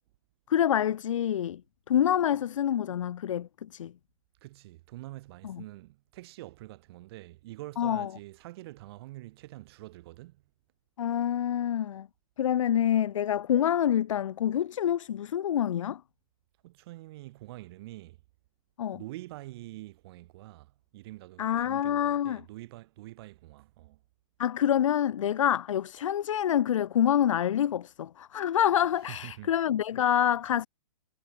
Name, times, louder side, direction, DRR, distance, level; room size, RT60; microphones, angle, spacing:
voice 1, 0.5-1.6 1.9-3.9 5.4-5.6 7.8-8.1 11.0-12.1 12.4-16.0 18.8-19.0 21.4-22.4 24.4-30.7, left 10 dB, 60° left, 0.5 m, -27 dB
voice 2, 4.4-10.4 16.6-18.2 18.9-24.0 29.1-29.5, right 18 dB, 45° right, 2.5 m, -46 dB
figure-of-eight pair, 115°, 18 cm